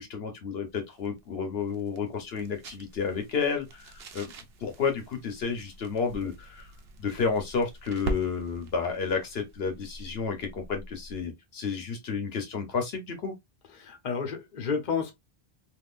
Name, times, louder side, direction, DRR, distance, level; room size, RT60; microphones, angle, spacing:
voice 1, 0.0-4.3 4.6-6.7 7.0-13.3, left 5 dB, 75° left, 1.1 m, -31 dB
sound 1, 0.7-11.3, right 2 dB, 75° right, 0.9 m, -43 dB
voice 2, 13.8-15.1, left 6 dB, 50° left, 0.9 m, -31 dB
3.6 x 2.6 x 2.4 m
omnidirectional pair, 1.1 m